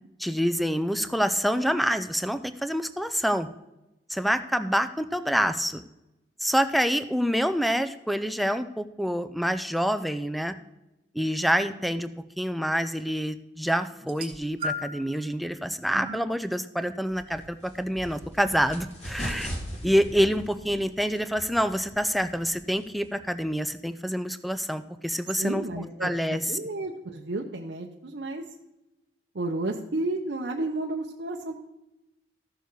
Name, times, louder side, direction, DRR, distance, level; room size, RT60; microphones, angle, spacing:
voice 1, 0.2-3.5 4.1-5.8 6.4-10.5 11.1-12.1 12.4-19.5 19.8-25.6 26.0-26.4, equal, ahead, 11 dB, 0.4 m, -27 dB
sound 1, 14.0-15.2 16.0-16.2 17.3-17.4, left 1 dB, 30° right, 2.2 m, -35 dB
sound 2, 17.1-23.2, equal, 40° left, 2.7 m, -40 dB
voice 2, 25.4-28.4 29.3-31.6, right 2 dB, 70° right, 0 dB, 0.8 m, -32 dB
14.0 x 6.9 x 4.6 m, 0.95 s
head